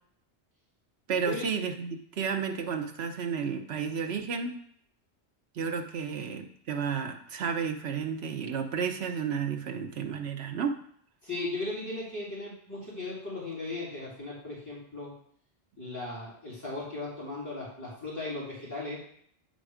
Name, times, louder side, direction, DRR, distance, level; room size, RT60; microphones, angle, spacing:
voice 1, 1.1-4.6 5.6-10.8, right 6 dB, 70° right, 4 dB, 1.1 m, -32 dB
voice 2, 11.2-15.1 15.8-19.0, left 2 dB, 15° left, -9 dB, 3.2 m, -37 dB
9.2 x 3.8 x 4.9 m, 0.63 s
omnidirectional pair, 1.2 m